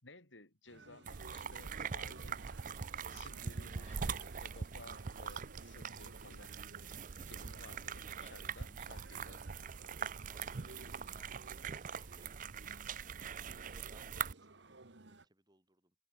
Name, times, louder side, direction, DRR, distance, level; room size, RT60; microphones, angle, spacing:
voice 1, 0.0-2.5 3.1-6.6 7.2-9.4, left 2 dB, 75° left, 5.0 m, -57 dB
sound 1, 0.7-15.3, right 2 dB, 65° right, 1.6 m, -57 dB
sound 2, 1.1-14.3, right 6 dB, 45° right, 0.5 m, -43 dB
voice 2, 3.7-4.4 10.3-12.4 13.6-15.9, right 2 dB, 20° right, 4.8 m, -66 dB
head